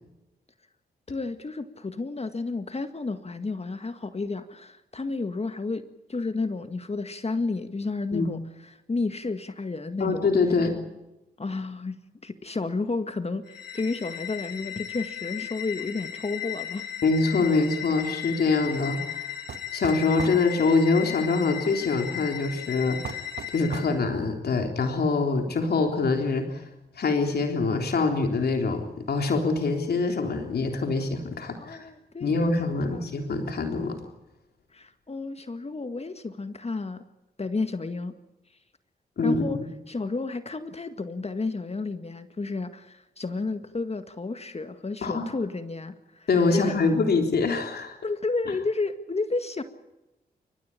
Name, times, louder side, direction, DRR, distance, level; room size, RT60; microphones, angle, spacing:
voice 1, 1.1-10.3 11.4-16.9 31.5-32.5 32.8-33.0 34.7-37.0 37.4-38.1 39.2-39.6 39.9-46.8 48.0-49.6, left 3 dB, 40° left, 9 dB, 1.9 m, -31 dB
voice 2, 10.0-10.8 17.0-19.2 19.7-23.3 23.5-26.6 27.0-31.9 32.2-34.0 39.2-39.7 45.0-45.4 46.3-48.0, left 4 dB, 70° left, 4 dB, 3.6 m, -24 dB
sound 1, 13.5-24.0, left 11 dB, 85° left, 3.4 m, -36 dB
Wall Bang, 19.5-20.4 23.0-24.0, right 7 dB, 75° right, 1.6 m, -37 dB
29.5 x 15.0 x 8.6 m, 0.98 s
supercardioid pair, 45°, 17 cm